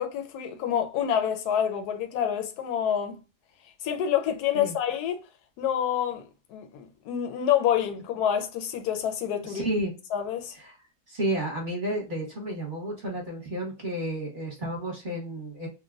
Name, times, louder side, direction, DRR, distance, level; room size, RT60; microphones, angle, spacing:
voice 1, 0.0-3.2 3.8-5.3 5.6-9.7 10.1-10.6, left 9 dB, 75° left, 1.1 m, -27 dB
voice 2, 9.4-9.9 10.6-10.7 11.1-15.7, right 1 dB, 35° right, 0.9 m, -31 dB
3.2 x 2.2 x 2.3 m
omnidirectional pair, 1.7 m